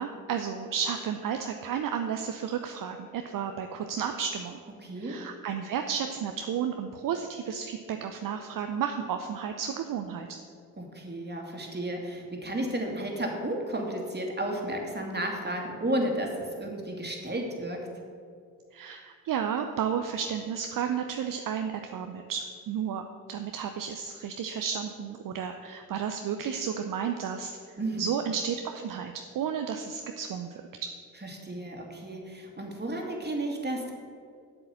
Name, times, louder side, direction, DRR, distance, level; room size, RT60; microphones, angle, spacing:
voice 1, 0.0-4.6 5.0-10.4 18.7-27.6 28.0-30.9, right 7 dB, 50° right, 6 dB, 0.7 m, -32 dB
voice 2, 4.8-5.2 10.8-17.9 27.8-28.1 31.2-33.9, right 1 dB, 25° right, 1 dB, 2.5 m, -33 dB
8.2 x 7.8 x 6.7 m, 2.3 s
hypercardioid pair, 40°, 41 cm